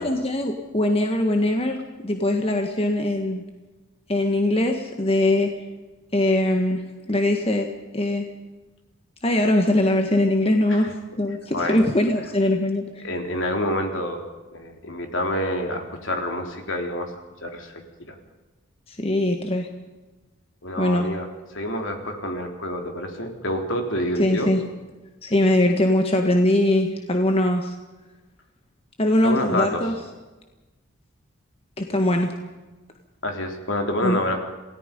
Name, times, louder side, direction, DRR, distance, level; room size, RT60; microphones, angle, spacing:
voice 1, 0.0-1.8 2.0-3.4 4.1-5.5 6.1-6.8 7.1-7.7 7.9-8.3 9.2-10.9 11.2-13.0 18.9-19.7 20.8-21.1 24.2-24.6 25.2-27.7 29.0-29.9 31.8-32.3 34.0-34.2, left 1 dB, 30° left, 4 dB, 1.6 m, -21 dB
voice 2, 11.5-11.9 13.0-14.3 14.5-17.1 17.4-18.2 20.6-24.5 29.2-29.8 33.2-34.4, left 1 dB, 65° left, 3 dB, 3.7 m, -28 dB
27.5 x 18.0 x 5.4 m, 1.2 s
head